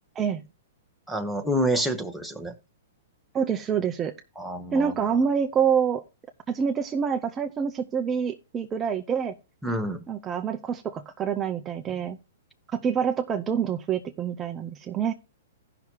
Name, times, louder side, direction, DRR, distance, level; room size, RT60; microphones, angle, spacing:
voice 1, 1.1-2.5 4.4-4.9 9.6-10.0, equal, ahead, 1.0 m, -28 dB
voice 2, 3.3-4.1 4.7-6.0 6.5-9.3 10.1-12.2 12.7-15.1, right 7 dB, 20° right, 0.6 m, -26 dB
16.0 x 5.9 x 2.9 m
hypercardioid pair, 120°, 0 cm